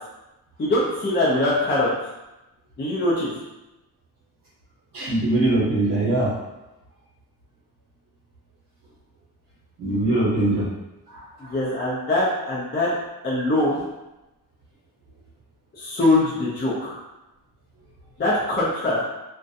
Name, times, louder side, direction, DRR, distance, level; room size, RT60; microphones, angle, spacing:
voice 1, 0.6-1.9 2.8-3.3 11.4-13.0 13.2-13.8 15.8-17.0 18.2-19.0, left 2 dB, 30° left, -7 dB, 0.4 m, -22 dB
voice 2, 4.9-6.4 9.8-10.7 11.1-11.5, right 2 dB, 60° right, -9 dB, 0.9 m, -22 dB
2.4 x 2.1 x 2.6 m, 1.0 s
wide cardioid pair, 165°, 39 cm